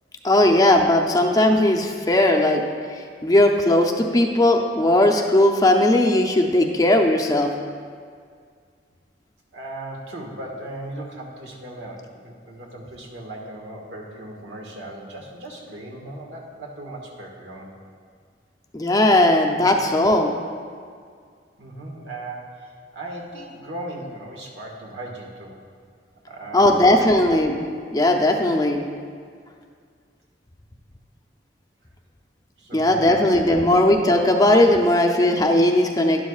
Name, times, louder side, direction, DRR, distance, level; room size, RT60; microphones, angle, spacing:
voice 1, 0.2-2.6 3.2-7.5 18.7-20.3 26.5-27.6 27.9-28.8 32.7-36.2, left 1 dB, 20° left, 2 dB, 0.6 m, -18 dB
voice 2, 9.5-17.7 21.6-25.6 26.3-27.1 32.6-33.6, right 1 dB, 75° right, -1 dB, 1.6 m, -37 dB
11.5 x 11.0 x 2.4 m, 2.1 s
head